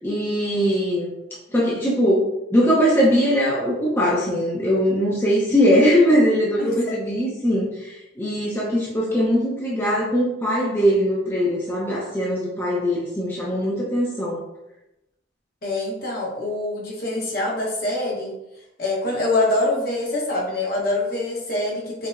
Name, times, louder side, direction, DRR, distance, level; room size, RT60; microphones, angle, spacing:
voice 1, 0.0-1.1 1.5-2.2 2.5-14.4, equal, 15° left, -6 dB, 0.5 m, -21 dB
voice 2, 6.6-7.0 15.6-18.4 18.8-22.1, left 2 dB, 55° left, -4 dB, 0.9 m, -25 dB
4.5 x 2.1 x 2.4 m, 0.91 s
head